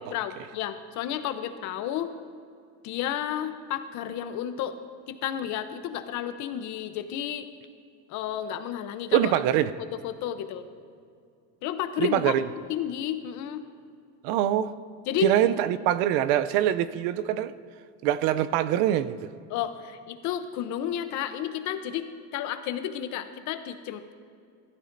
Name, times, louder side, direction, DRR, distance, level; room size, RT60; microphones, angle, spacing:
voice 1, 0.1-2.1 2.8-4.8 5.1-7.5 8.1-9.3 9.8-10.7 11.6-12.3 12.7-13.6 15.1-15.3 19.5-24.1, left 10 dB, 55° left, 10 dB, 0.8 m, -32 dB
voice 2, 9.1-9.7 12.0-12.4 14.2-14.7 15.2-17.5 18.0-19.3, right 11 dB, 90° right, 14 dB, 0.6 m, -24 dB
15.0 x 12.5 x 2.6 m, 2.3 s
cardioid pair, 145°, 33 cm